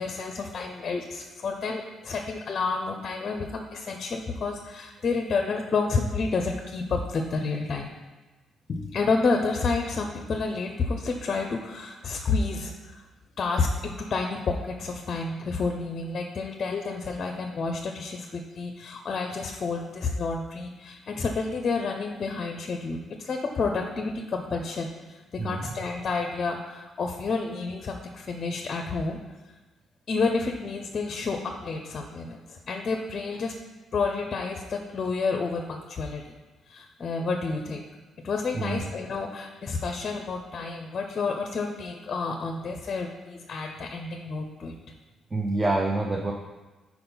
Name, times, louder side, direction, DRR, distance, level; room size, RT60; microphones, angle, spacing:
voice 1, 0.0-7.9 8.7-13.0 13.4-29.2 30.1-33.5 33.9-36.4 36.7-37.8 38.2-44.7, left 4 dB, 45° left, 3 dB, 0.5 m, -30 dB
voice 2, 25.4-25.8 38.5-38.9 45.3-46.3, right 2 dB, 25° right, 2 dB, 0.5 m, -27 dB
4.3 x 4.3 x 5.4 m, 1.2 s
cardioid pair, 90°, 0 cm